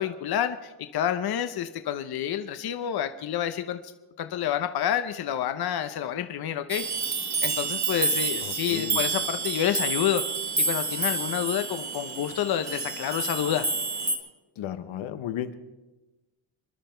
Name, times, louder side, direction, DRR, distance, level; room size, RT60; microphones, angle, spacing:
voice 1, 0.0-3.8 4.2-6.8 7.4-10.2 10.6-13.7, left 10 dB, 50° left, 9 dB, 0.8 m, -28 dB
sound 1, 6.7-14.2, right 4 dB, 35° right, 1.8 m, -29 dB
voice 2, 8.4-9.0 14.6-15.5, left 10 dB, 75° left, 10 dB, 1.2 m, -34 dB
26.5 x 11.5 x 4.5 m, 1.1 s
cardioid pair, 140°, 47 cm